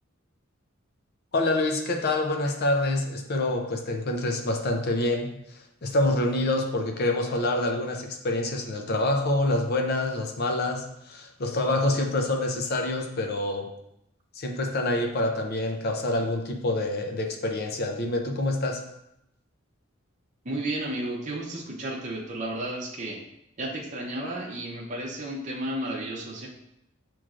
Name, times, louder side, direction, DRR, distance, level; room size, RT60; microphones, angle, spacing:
voice 1, 1.3-13.7 14.3-18.8, left 2 dB, 50° left, 3 dB, 0.6 m, -26 dB
voice 2, 20.4-23.2 23.6-26.5, right 1 dB, 40° right, -3 dB, 0.7 m, -33 dB
6.1 x 3.0 x 2.4 m, 0.82 s
head